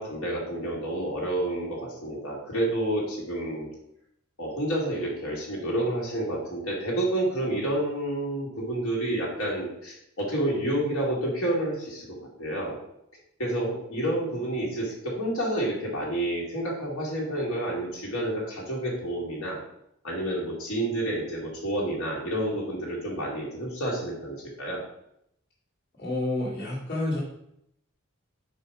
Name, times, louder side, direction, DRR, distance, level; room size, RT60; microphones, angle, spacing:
voice 1, 0.0-3.7 4.4-12.1 12.4-12.8 13.4-19.6 20.0-24.8, right 1 dB, 80° left, -4 dB, 2.2 m, -29 dB
voice 2, 26.0-27.2, left 2 dB, 50° left, -6 dB, 2.0 m, -29 dB
5.0 x 4.9 x 4.8 m, 0.75 s
head